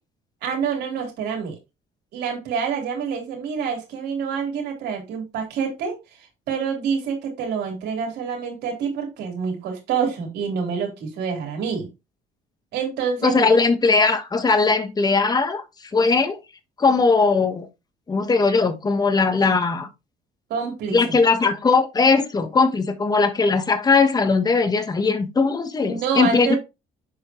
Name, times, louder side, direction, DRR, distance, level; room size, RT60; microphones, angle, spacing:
voice 1, 0.4-1.6 2.1-6.0 6.5-11.9 12.7-13.5 20.5-21.0 25.8-26.6, right 6 dB, 80° right, 3.5 m, -27 dB
voice 2, 13.2-15.6 15.9-16.4 16.8-17.7 18.1-19.9 20.9-26.6, left 4 dB, 25° left, 1.2 m, -19 dB
7.5 x 5.3 x 2.9 m
cardioid pair, 110°, 17 cm